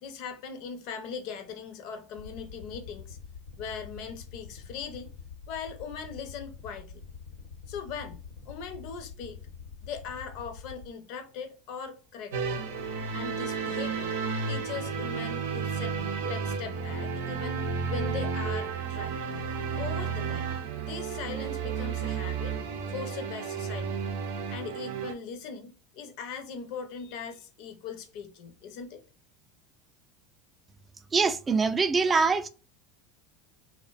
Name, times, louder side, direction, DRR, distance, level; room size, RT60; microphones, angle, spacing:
voice 1, 0.0-3.2 3.6-5.1 5.5-7.0 7.7-8.2 8.5-9.4 9.8-12.6 13.1-14.2 14.5-19.1 19.8-20.5 20.8-22.6 22.9-24.0 24.5-29.0, left 6 dB, 60° left, 0.6 m, -40 dB
sound 1, 2.1-10.9, left 5 dB, 85° left, 0.8 m, -46 dB
sound 2, 12.3-25.1, right 5 dB, 80° right, 0.5 m, -32 dB
voice 2, 31.1-32.5, right 4 dB, 25° right, 0.3 m, -24 dB
2.4 x 2.1 x 2.4 m
supercardioid pair, 105°, 0 cm